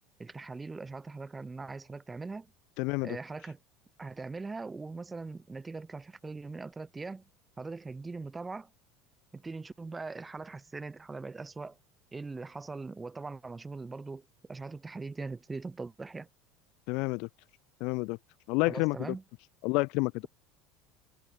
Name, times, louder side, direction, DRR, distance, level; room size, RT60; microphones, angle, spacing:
voice 1, 0.2-2.5 3.0-3.6 4.0-7.2 7.6-8.7 9.3-11.8 12.1-16.3 18.7-19.2, right 3 dB, 20° right, 3.9 m, -41 dB
voice 2, 2.8-3.2 16.9-17.3 17.8-18.2 18.5-19.0 19.6-20.2, left 27 dB, 60° left, 0.4 m, -29 dB
hypercardioid pair, 75°, 0 cm